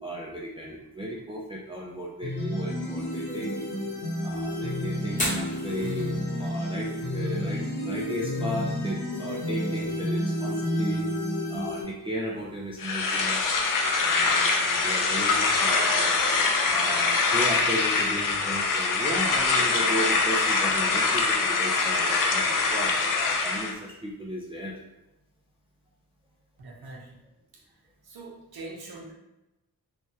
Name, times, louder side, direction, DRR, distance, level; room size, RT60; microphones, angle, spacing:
voice 1, 0.0-3.7 4.2-6.1 6.4-11.1 11.5-13.5 14.0-16.2 16.6-24.8, equal, 15° right, -4 dB, 0.3 m, -35 dB
sound 1, 2.2-11.8, left 1 dB, 85° left, 0.9 m, -30 dB
Fire, 5.1-18.9, left 1 dB, 20° left, 0.7 m, -43 dB
sound 2, 12.8-23.7, left 4 dB, 55° left, 0.5 m, -24 dB
voice 2, 26.6-27.1 27.5-27.6 28.0-29.1, right 2 dB, 70° right, -2 dB, 0.8 m, -43 dB
3.2 x 2.2 x 2.7 m, 0.93 s
wide cardioid pair, 145°, 39 cm